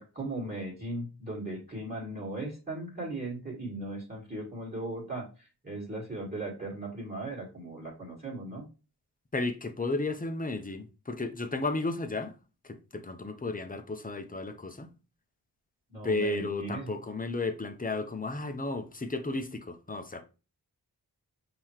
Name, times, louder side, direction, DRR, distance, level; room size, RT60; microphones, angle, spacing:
voice 1, 0.0-8.7 15.9-16.9, right 2 dB, 20° right, 2.0 m, -38 dB
voice 2, 9.3-12.4 12.6-14.9 16.0-20.2, left 2 dB, 20° left, 0.8 m, -33 dB
5.4 x 3.0 x 3.1 m
cardioid pair, 40°, 43 cm